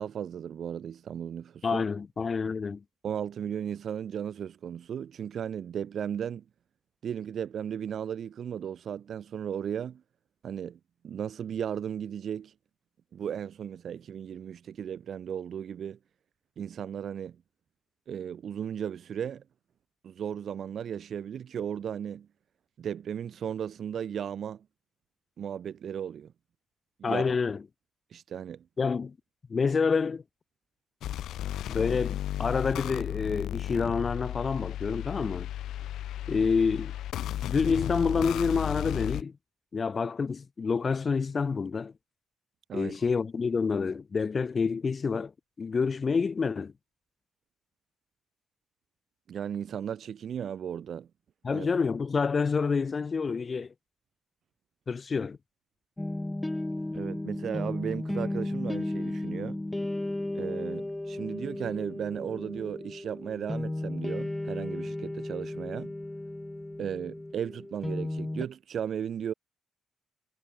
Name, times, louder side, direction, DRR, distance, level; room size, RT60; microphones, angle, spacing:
voice 1, 0.0-1.8 3.0-6.4 7.0-10.0 10.4-12.5 13.1-16.0 16.6-17.4 18.1-19.4 20.0-22.3 22.8-24.6 25.4-26.3 27.0-27.2 28.1-28.6 42.7-43.0 49.3-51.1 51.5-51.7 56.9-59.6 60.3-65.9 66.8-69.3, right 8 dB, 60° right, 2.0 m, -35 dB
voice 2, 1.6-2.8 27.0-27.6 28.8-29.1 29.5-30.2 31.7-35.5 36.3-36.9 37.4-39.3 39.7-41.9 42.7-45.3 45.6-46.7 51.4-53.7 54.9-55.4, left 5 dB, 35° left, 0.7 m, -28 dB
sound 1, 31.0-39.2, left 12 dB, 80° left, 1.0 m, -34 dB
sound 2, 56.0-68.5, left 1 dB, 10° left, 5.4 m, -34 dB
cardioid pair, 90°, 0 cm